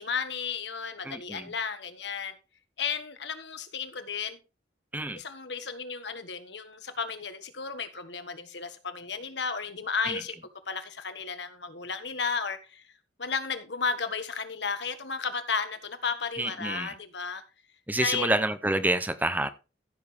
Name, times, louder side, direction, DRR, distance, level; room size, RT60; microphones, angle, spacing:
voice 1, 0.0-2.3 2.8-4.4 5.1-10.4 10.7-12.8 13.2-17.4 18.0-18.3, left 5 dB, 80° left, 1.5 m, -33 dB
voice 2, 1.0-1.5 4.9-5.2 10.1-10.2 16.4-16.9 17.9-19.5, right 1 dB, 10° right, 0.6 m, -28 dB
14.5 x 6.9 x 3.4 m
head